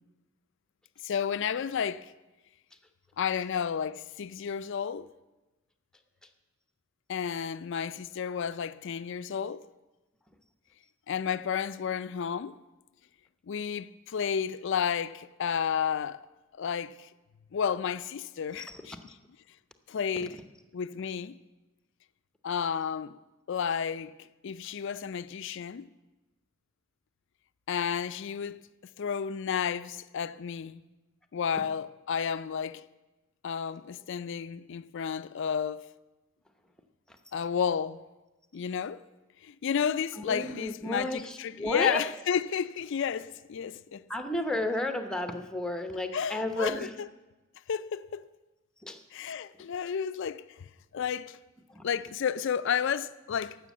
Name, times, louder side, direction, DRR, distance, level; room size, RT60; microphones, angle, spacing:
voice 1, 1.0-2.1 3.2-5.1 7.1-9.7 11.1-12.6 13.5-16.3 16.6-17.1 17.5-19.1 19.9-20.4 20.7-21.4 22.4-23.2 23.5-24.2 24.4-25.9 27.7-28.6 29.0-30.8 31.3-32.9 33.4-35.9 37.3-38.0 38.5-39.0 39.4-44.0 46.1-47.1 47.7-48.3 49.1-50.6 50.9-51.4 51.8-53.6, left 7 dB, 65° left, 0.4 m, -32 dB
voice 2, 40.3-42.0 44.1-46.9 48.8-49.0 51.7-51.8, left 1 dB, 5° left, 0.8 m, -32 dB
14.5 x 6.2 x 8.4 m
head